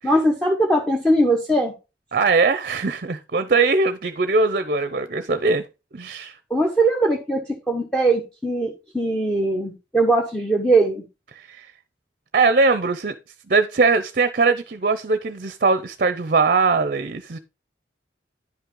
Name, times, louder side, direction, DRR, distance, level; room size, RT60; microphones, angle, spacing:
voice 1, 0.0-1.7 6.5-7.4 7.7-11.0, right 2 dB, 5° left, 1.2 m, -20 dB
voice 2, 2.1-5.6 5.9-6.3 11.5-11.7 12.3-13.1 13.5-17.4, right 4 dB, 50° right, 0.6 m, -20 dB
10.5 x 5.7 x 3.8 m
head